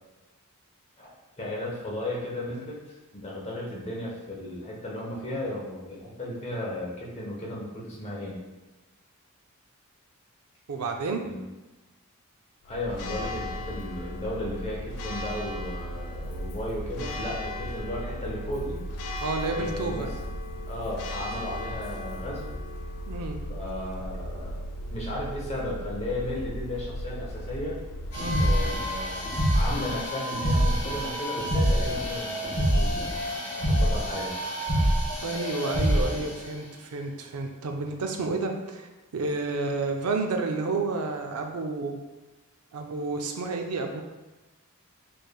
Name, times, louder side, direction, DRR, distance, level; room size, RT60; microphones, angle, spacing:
voice 1, 1.0-2.8 3.1-8.4 11.2-11.5 12.6-18.8 19.5-20.1 20.7-22.5 23.5-27.8 28.4-33.3 33.6-34.3, left 1 dB, 30° left, -4 dB, 0.9 m, -35 dB
voice 2, 10.7-11.2 19.2-20.1 23.1-23.4 28.2-28.5 35.2-42.0 42.7-44.0, right 3 dB, 85° right, 4 dB, 0.5 m, -30 dB
Church bell, 12.6-29.9, equal, 85° left, 0.4 m, -36 dB
sound 1, 28.1-36.3, equal, 50° left, 1.4 m, -26 dB
4.5 x 3.3 x 2.3 m, 1.1 s
head